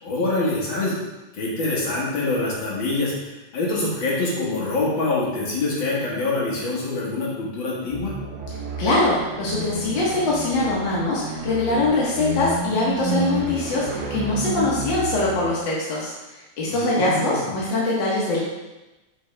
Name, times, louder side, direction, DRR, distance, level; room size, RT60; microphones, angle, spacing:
voice 1, 0.0-1.0 1.3-3.1 3.5-8.1 16.7-17.6, left 2 dB, 45° left, -6 dB, 1.9 m, -25 dB
sound 1, 7.9-15.5, right 2 dB, 75° right, 2.5 m, -31 dB
voice 2, 8.8-16.1 16.6-18.4, left 2 dB, 65° left, -6 dB, 1.2 m, -23 dB
6.1 x 4.8 x 3.3 m, 1.1 s
omnidirectional pair, 3.5 m